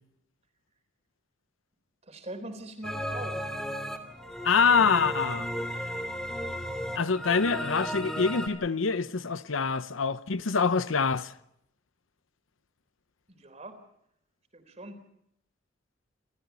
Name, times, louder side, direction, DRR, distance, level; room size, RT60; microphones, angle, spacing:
voice 1, 2.0-3.4 13.3-13.8 14.5-15.0, right 1 dB, 35° right, 3.8 m, -42 dB
sound 1, 2.8-8.5, equal, 5° left, 2.8 m, -34 dB
voice 2, 4.4-5.5 7.0-11.3, left 5 dB, 90° left, 0.8 m, -25 dB
28.5 x 14.5 x 8.3 m
head